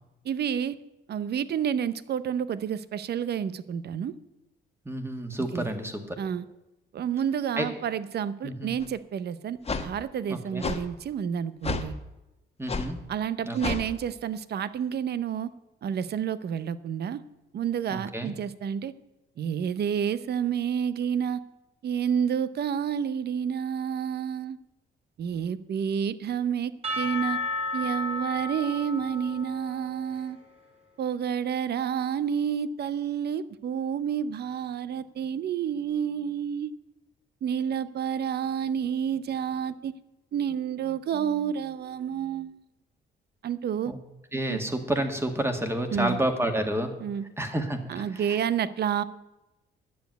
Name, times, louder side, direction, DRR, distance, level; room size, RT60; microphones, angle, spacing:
voice 1, 0.2-0.8 1.1-4.1 5.5-5.7 6.2-6.5 6.9-11.9 13.1-15.5 15.8-17.2 17.5-18.9 19.4-21.4 21.8-24.6 25.2-27.4 27.7-30.4 31.0-36.7 37.4-40.0 40.3-42.6 43.4-43.9 44.5-44.6 45.9-46.2 47.0-47.2 47.9-49.0, right 8 dB, 55° right, 16 dB, 0.7 m, -29 dB
voice 2, 4.9-6.2 7.6-7.7 8.4-8.7 10.3-10.7 12.6-13.0 13.5-13.8 17.9-18.3 43.9-44.0 44.3-46.9 47.4-48.4, right 1 dB, 10° right, 5 dB, 1.8 m, -30 dB
sound 1, 8.8-8.9 9.7-9.9 10.6-10.8 11.6-11.9 12.7-12.9 13.6-13.9, left 4 dB, 30° left, 1.2 m, -30 dB
Percussion / Church bell, 26.8-30.5, left 2 dB, 30° right, 3.5 m, -33 dB
10.5 x 7.1 x 9.2 m, 0.98 s
cardioid pair, 90°, 20 cm